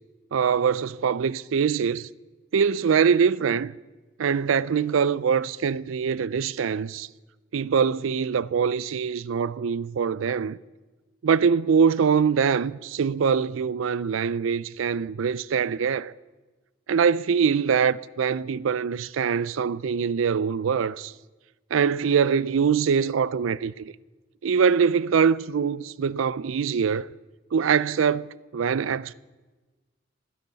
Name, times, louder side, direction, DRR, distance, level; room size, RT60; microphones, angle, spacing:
voice 1, 0.3-2.1 2.5-3.7 4.2-7.1 7.5-10.6 11.2-16.1 16.9-21.1 21.7-23.9 24.4-27.1 27.5-29.1, right 6 dB, 80° right, 0.4 m, -23 dB
28.5 x 10.0 x 4.0 m
head